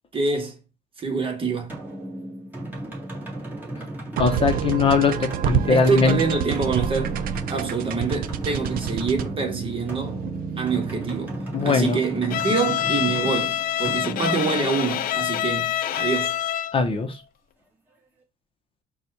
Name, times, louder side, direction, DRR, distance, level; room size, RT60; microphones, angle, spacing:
voice 1, 0.1-0.6 1.0-1.8 5.7-7.2 7.5-10.2 10.6-11.4 11.6-16.4, right 4 dB, 30° right, 1.3 m, -26 dB
sound 1, 1.7-15.2, right 1 dB, 10° right, 1.8 m, -35 dB
voice 2, 4.2-6.2 11.5-12.0 16.7-17.2, left 4 dB, 30° left, 0.8 m, -20 dB
sound 2, 4.2-11.5, right 9 dB, 60° right, 0.5 m, -29 dB
Bowed string instrument, 12.3-16.9, left 11 dB, 60° left, 0.4 m, -26 dB
4.1 x 2.4 x 4.5 m
cardioid pair, 110°, 17 cm